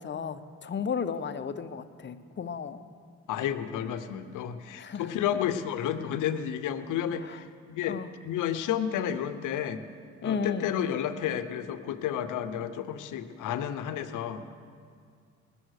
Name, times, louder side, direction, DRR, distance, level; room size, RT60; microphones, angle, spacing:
voice 1, 0.0-2.8 4.8-5.2 7.2-7.4 7.9-8.1 10.2-10.7, left 6 dB, 40° left, 9 dB, 0.7 m, -34 dB
voice 2, 3.3-8.0 8.2-9.8 10.2-14.5, left 9 dB, 85° left, 10 dB, 0.7 m, -31 dB
20.5 x 7.0 x 6.5 m, 2.2 s
cardioid pair, 75°, 30 cm